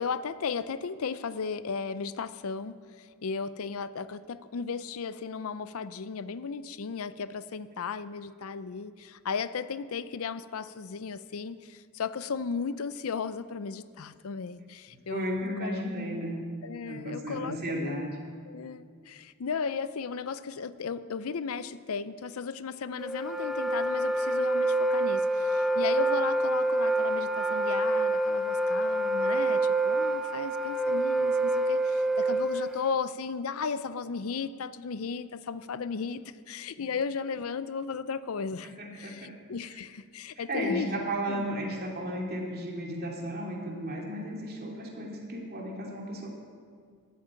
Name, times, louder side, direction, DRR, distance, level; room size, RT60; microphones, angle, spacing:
voice 1, 0.0-15.8 16.6-18.1 18.5-41.5, left 5 dB, 70° left, 14 dB, 0.5 m, -35 dB
voice 2, 15.1-16.5 16.9-18.2 38.6-39.3 40.4-46.3, right 1 dB, 45° right, 0 dB, 2.4 m, -34 dB
Wind instrument woodwind instrument, 23.0-32.9, right 1 dB, ahead, 0.6 m, -27 dB
12.5 x 8.4 x 8.7 m, 2.1 s
head